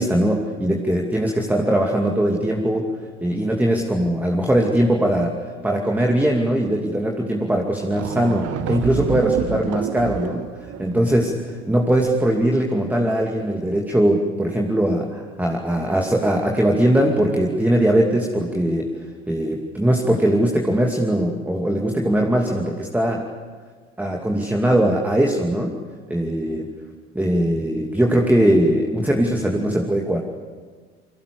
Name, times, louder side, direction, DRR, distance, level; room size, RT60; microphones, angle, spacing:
voice 1, 0.0-2.9 3.2-18.9 19.3-23.2 24.0-25.8 26.1-26.7 27.1-30.2, right 1 dB, 5° right, 1 dB, 2.7 m, -20 dB
sound 1, 7.5-7.6 7.8-11.6, right 10 dB, 45° right, 1.5 m, -29 dB
29.0 x 24.5 x 6.8 m, 1.5 s
figure-of-eight pair, 65°, 34 cm